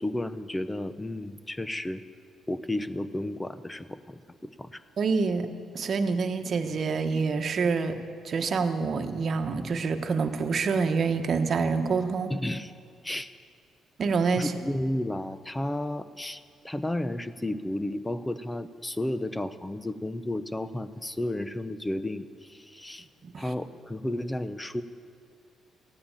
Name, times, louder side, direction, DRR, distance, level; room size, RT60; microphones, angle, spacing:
voice 1, 0.0-2.0 2.5-4.8 12.3-12.7 13.0-13.3 14.3-23.1 23.4-24.8, left 1 dB, 10° left, 13 dB, 0.7 m, -32 dB
voice 2, 5.0-5.5 5.7-12.3 14.0-14.5 23.2-23.4, right 4 dB, 50° right, 6 dB, 1.2 m, -27 dB
15.5 x 9.5 x 8.8 m, 2.3 s
cardioid pair, 90°, 0 cm